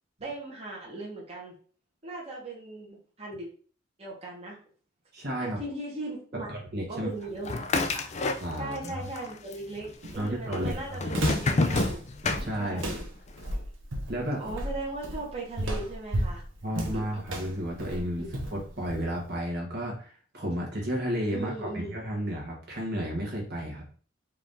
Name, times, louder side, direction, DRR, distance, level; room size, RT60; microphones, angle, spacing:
voice 1, 0.2-1.5 2.0-3.5 4.0-4.6 5.4-6.5 6.9-8.1 8.6-12.0 12.5-13.0 14.4-16.4 17.1-17.2 18.2-18.3 21.3-21.9, right 2 dB, 30° right, -3 dB, 1.2 m, -38 dB
voice 2, 5.1-5.6 6.5-7.1 8.4-9.1 10.1-11.1 12.4-12.9 14.1-14.4 16.6-18.3 18.5-23.8, equal, 55° right, -1 dB, 1.3 m, -32 dB
sound 1, 7.4-8.9 9.2-9.9 10.5-13.0, left 3 dB, 35° left, 0.4 m, -28 dB
Walk footsteps, 10.0-19.3, right 1 dB, 80° right, 1.1 m, -34 dB
4.6 x 2.7 x 3.5 m, 0.42 s
head